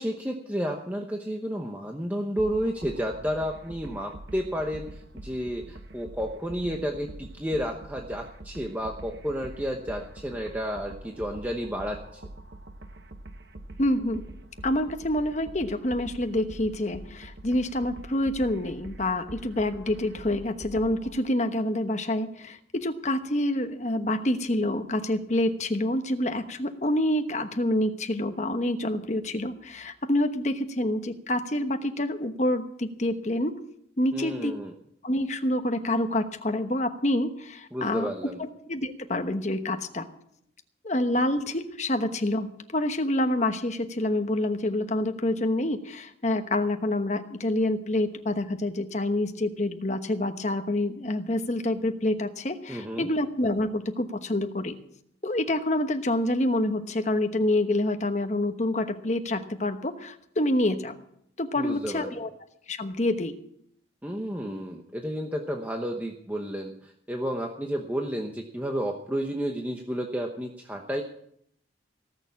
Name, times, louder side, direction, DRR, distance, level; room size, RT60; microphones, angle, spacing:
voice 1, 0.0-12.2 34.1-34.7 37.7-38.4 52.7-53.1 61.6-62.1 64.0-71.0, equal, 10° right, 1 dB, 1.0 m, -31 dB
sound 1, 2.4-21.2, right 1 dB, 65° right, 1.1 m, -44 dB
voice 2, 13.8-14.2 14.6-33.6 34.0-34.5 35.0-38.1 38.4-40.1 40.8-54.8 55.2-61.0 61.4-62.3 62.7-63.3, left 1 dB, 40° left, 7 dB, 1.1 m, -27 dB
18.0 x 6.8 x 8.5 m, 0.72 s
head